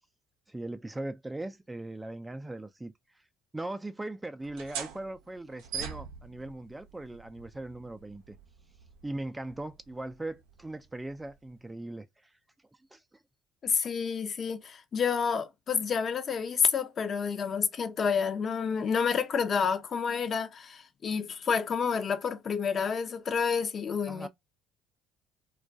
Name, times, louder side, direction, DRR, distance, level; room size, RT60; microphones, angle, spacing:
voice 1, 0.5-2.9 3.5-8.4 9.0-12.3 12.9-13.0 24.1-24.3, right 2 dB, 15° right, 0.3 m, -39 dB
sound 1, 4.4-11.7, right 7 dB, 80° right, 0.5 m, -45 dB
voice 2, 13.6-24.3, left 6 dB, 45° left, 0.6 m, -29 dB
2.3 x 2.2 x 2.5 m
hypercardioid pair, 65°, 0 cm